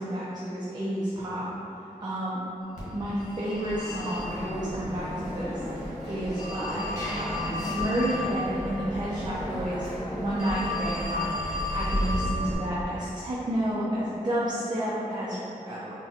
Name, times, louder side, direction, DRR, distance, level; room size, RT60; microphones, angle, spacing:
voice 1, 0.0-1.5 1.8-2.4 2.9-15.9, right 1 dB, 30° right, -8 dB, 0.6 m, -31 dB
Telephone, 2.8-12.6, left 1 dB, 60° left, 1.2 m, -32 dB
3.9 x 2.3 x 2.7 m, 2.9 s
cardioid pair, 50°, 14 cm